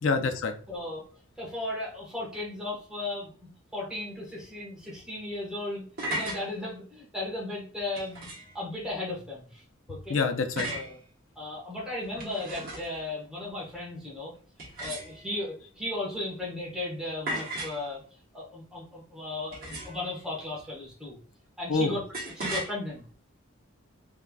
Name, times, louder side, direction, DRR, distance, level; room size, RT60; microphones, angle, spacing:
voice 1, 0.0-0.5 9.9-10.7 21.7-22.0, left 4 dB, 70° left, 6 dB, 0.4 m, -27 dB
voice 2, 0.7-1.0 1.4-3.3 3.7-9.6 9.9-10.2 10.7-11.0 11.4-14.3 14.8-18.0 18.3-21.2 21.6-22.0 22.4-23.0, left 2 dB, 5° right, -5 dB, 1.1 m, -36 dB
sound 1, 5.7-6.4 7.9-8.6 10.6-10.9 12.0-13.0 14.6-15.4 17.3-17.8 19.5-20.1 22.1-22.7, right 1 dB, 45° right, 1.1 m, -35 dB
3.5 x 3.3 x 2.3 m, 0.42 s
head